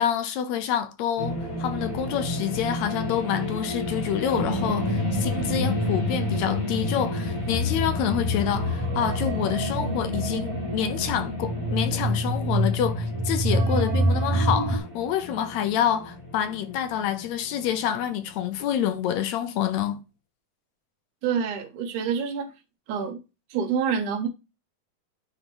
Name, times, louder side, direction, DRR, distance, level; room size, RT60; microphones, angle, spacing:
voice 1, 0.0-20.0, left 9 dB, 75° left, 1.8 m, -27 dB
sound 1, 1.2-18.9, left 1 dB, 40° left, 3.5 m, -35 dB
sound 2, 4.3-14.8, equal, 65° right, 2.1 m, -27 dB
voice 2, 21.2-22.5 22.9-23.2 23.5-24.3, right 7 dB, 85° right, 2.4 m, -27 dB
9.4 x 3.5 x 3.0 m
omnidirectional pair, 3.4 m